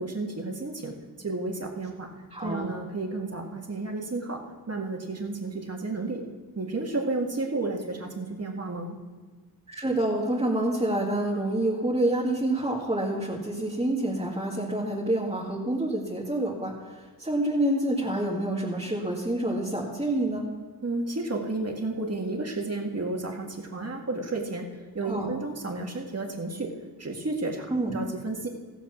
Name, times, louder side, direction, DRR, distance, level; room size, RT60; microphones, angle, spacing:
voice 1, 0.0-2.1 2.4-6.2 6.6-9.0 20.8-26.7 27.0-27.7 27.9-28.5, right 2 dB, 40° right, 2 dB, 2.0 m, -32 dB
voice 2, 2.3-2.7 9.7-20.4 25.0-25.3 27.7-28.0, right 1 dB, 15° right, -5 dB, 2.2 m, -27 dB
15.0 x 7.1 x 6.0 m, 1.4 s
cardioid pair, 60°, 38 cm